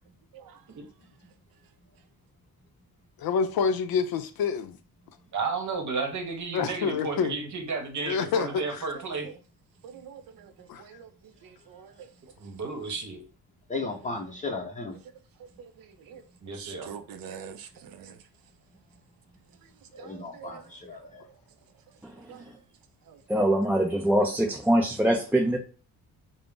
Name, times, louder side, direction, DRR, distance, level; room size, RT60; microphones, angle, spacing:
voice 1, 3.2-4.8 6.5-7.3 8.0-8.9 10.7-10.8, left 6 dB, 70° left, 0.5 m, -27 dB
voice 2, 5.3-9.3 12.4-13.2 16.4-16.9, right 4 dB, 50° right, 0.9 m, -32 dB
voice 3, 9.8-10.5 10.8-11.1 11.4-12.1 15.6-16.2 16.5-18.2 20.0-20.6 22.3-22.4 23.1-23.2, right 8 dB, 65° right, 0.5 m, -45 dB
voice 4, 13.7-14.9 19.9-21.2, left 3 dB, 20° left, 0.8 m, -35 dB
voice 5, 23.3-25.6, right 1 dB, 5° right, 0.3 m, -23 dB
2.5 x 2.0 x 3.6 m
cardioid pair, 85°, 38 cm